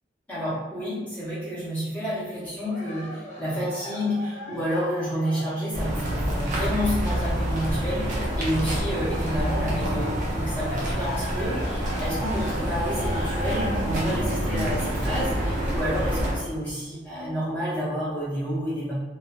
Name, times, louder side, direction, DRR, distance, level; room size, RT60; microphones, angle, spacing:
voice 1, 0.3-18.9, equal, 10° left, -11 dB, 0.8 m, -30 dB
Cheering, 2.6-9.0 9.3-15.9 16.5-16.6, equal, 40° left, 0.6 m, -39 dB
sound 1, 5.7-16.3, equal, 45° right, 0.6 m, -27 dB
sound 2, 11.6-11.8 12.4-12.7 13.1-13.4 14.0-14.3 15.1-15.3 16.1-16.2, left 1 dB, 90° left, 0.9 m, -40 dB
2.5 x 2.2 x 2.3 m, 1.3 s
head